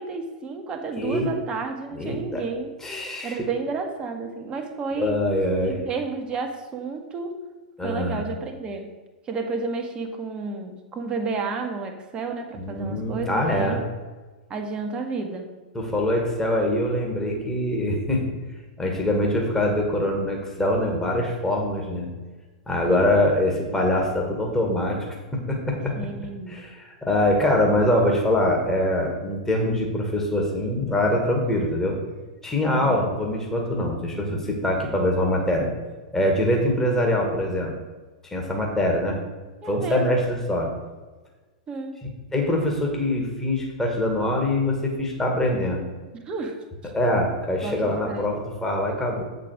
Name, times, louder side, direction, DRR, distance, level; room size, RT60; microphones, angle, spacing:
voice 1, 0.0-2.7 3.2-5.2 5.7-7.4 7.8-8.9 9.3-13.8 14.5-15.5 22.9-23.2 25.9-26.7 32.7-33.0 39.6-40.2 41.7-42.0 46.1-46.9 47.6-48.4, right 4 dB, 25° right, 3 dB, 1.4 m, -31 dB
voice 2, 1.0-1.3 2.0-2.4 2.8-3.5 5.0-5.8 7.8-8.2 12.6-13.8 15.7-18.2 18.8-22.1 22.7-25.1 25.3-25.9 26.5-32.0 32.4-35.7 36.1-37.7 38.3-39.2 39.6-40.7 42.3-45.8 46.9-49.2, left 1 dB, 10° left, 0 dB, 1.9 m, -23 dB
8.2 x 5.2 x 6.4 m, 1.3 s
figure-of-eight pair, 100°, 4 cm